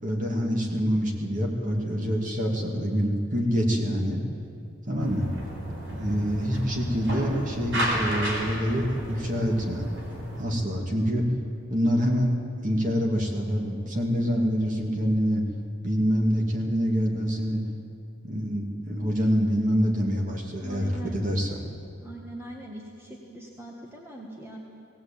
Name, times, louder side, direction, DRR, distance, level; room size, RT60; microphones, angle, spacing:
voice 1, 0.0-4.2 4.9-5.3 5.9-9.8 10.4-11.3 11.7-12.4 12.6-15.4 15.8-17.6 18.2-21.6, equal, 35° right, 0 dB, 2.5 m, -26 dB
sound 1, 5.0-10.4, right 1 dB, 55° right, 4.5 m, -32 dB
voice 2, 20.6-21.2 22.0-24.6, right 1 dB, 10° right, -1 dB, 1.6 m, -41 dB
18.0 x 17.5 x 8.8 m, 2.7 s
head